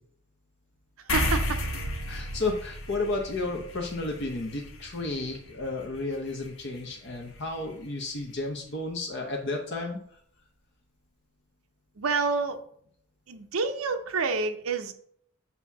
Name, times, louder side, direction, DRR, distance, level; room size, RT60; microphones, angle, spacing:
sound 1, 1.1-7.9, left 1 dB, 80° left, 1.4 m, -34 dB
voice 1, 1.1-1.6 12.0-12.6 13.3-14.9, right 4 dB, 80° right, 7 dB, 0.7 m, -28 dB
voice 2, 2.1-10.2, left 2 dB, 55° left, 1 dB, 0.9 m, -32 dB
7.8 x 2.8 x 6.0 m, 0.65 s
head